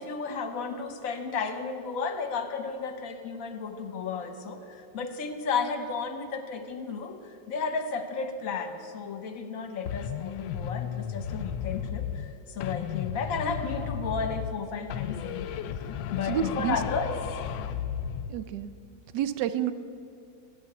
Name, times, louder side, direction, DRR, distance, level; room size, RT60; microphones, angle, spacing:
voice 1, 0.0-15.7 16.1-17.3, left 5 dB, 55° left, 7 dB, 1.3 m, -33 dB
sound 1, 9.9-12.3 12.6-14.6 14.9-18.3, left 9 dB, 85° left, 1.3 m, -34 dB
voice 2, 16.2-16.8 18.3-18.7 19.1-19.7, right 9 dB, 75° right, 12 dB, 1.2 m, -29 dB
11.5 x 9.0 x 8.0 m, 2.4 s
omnidirectional pair, 2.0 m